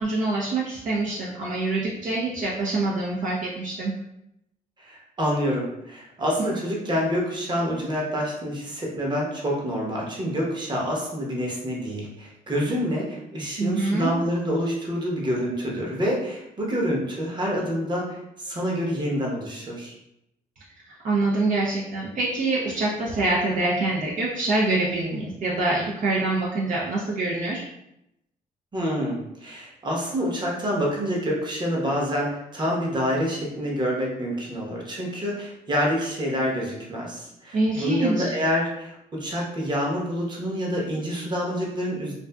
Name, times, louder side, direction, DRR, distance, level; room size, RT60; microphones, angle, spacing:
voice 1, 0.0-3.9 13.6-14.1 20.9-27.6 37.5-38.2, right 2 dB, 55° right, -5 dB, 0.6 m, -25 dB
voice 2, 4.8-19.9 28.7-42.1, equal, 30° right, -2 dB, 0.9 m, -27 dB
2.5 x 2.4 x 2.2 m, 0.82 s
cardioid pair, 75°, 16 cm